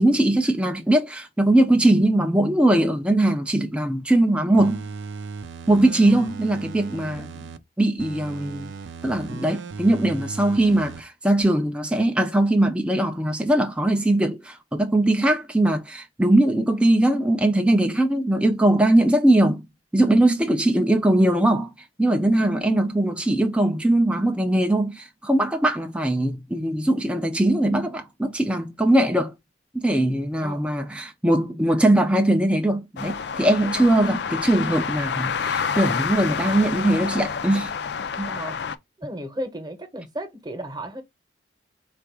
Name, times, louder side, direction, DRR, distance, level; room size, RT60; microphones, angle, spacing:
voice 1, 0.0-4.9 5.7-7.3 7.8-8.7 9.0-19.7 19.9-21.7 22.0-29.3 29.7-37.7 38.2-38.3, right 1 dB, 5° right, 0.4 m, -20 dB
sound 1, 4.6-7.6 8.0-11.0 11.4-11.5, right 4 dB, 80° right, 0.5 m, -37 dB
voice 2, 30.4-30.7 33.6-33.9 38.3-38.6 39.0-41.0, right 1 dB, 20° right, 0.9 m, -34 dB
sound 2, 33.0-38.7, left 6 dB, 60° left, 0.4 m, -28 dB
4.4 x 2.5 x 4.6 m
head